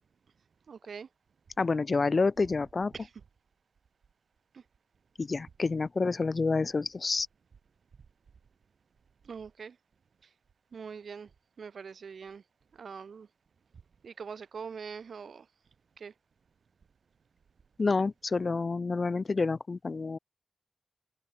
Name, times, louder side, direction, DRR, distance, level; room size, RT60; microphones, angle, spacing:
voice 1, 0.7-1.1 2.9-3.1 4.5-4.6 9.2-9.8 10.7-11.3 11.6-12.4 12.7-13.3 14.0-15.5 16.0-16.1, right 6 dB, 85° right, 3.1 m, -43 dB
voice 2, 1.6-2.9 5.2-7.3 17.8-20.2, left 4 dB, 50° left, 0.7 m, -28 dB
wide cardioid pair, 75°, 0 cm